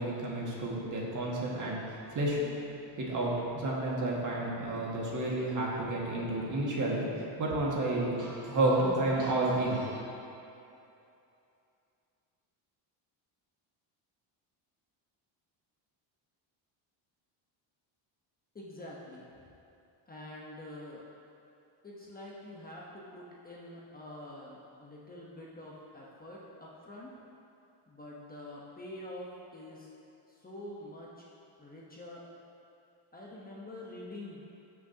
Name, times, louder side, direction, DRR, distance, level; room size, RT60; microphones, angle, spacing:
voice 1, 0.0-2.6 3.0-10.0, right 1 dB, 35° right, -4 dB, 1.9 m, -31 dB
voice 2, 18.5-19.2 20.1-21.0 21.8-27.1 27.9-29.9 30.3-31.1 31.6-32.2 33.1-34.4, left 1 dB, 20° left, -5 dB, 1.0 m, -46 dB
14.5 x 6.4 x 2.9 m, 2.7 s
cardioid pair, 130°, 50 cm